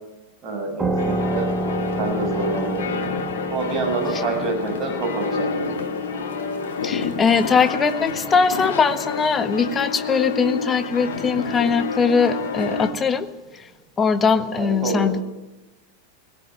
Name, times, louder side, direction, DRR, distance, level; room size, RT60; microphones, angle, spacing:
voice 1, 0.4-1.6 2.0-3.0 3.5-5.7 14.6-15.1, right 2 dB, 30° right, 2 dB, 6.8 m, -27 dB
sound 1, 0.8-10.0, right 1 dB, 10° right, 2.4 m, -30 dB
sound 2, 1.0-12.9, left 5 dB, 60° left, 2.6 m, -29 dB
voice 2, 6.8-13.3 13.5-13.6 14.0-15.2, left 5 dB, 20° left, 10 dB, 1.5 m, -21 dB
18.0 x 18.0 x 9.5 m, 0.99 s
figure-of-eight pair, 90°, 0 cm